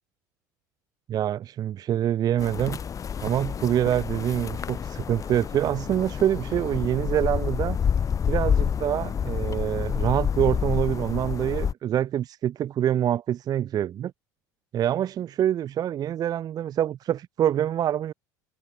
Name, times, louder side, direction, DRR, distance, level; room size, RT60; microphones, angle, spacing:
voice 1, 1.1-2.8 3.2-7.8 8.3-14.1 14.7-18.1, right 11 dB, 40° right, 0.5 m, -25 dB
sound 1, 2.4-11.7, left 7 dB, 35° left, 1.5 m, -28 dB
hypercardioid pair, 70°, 10 cm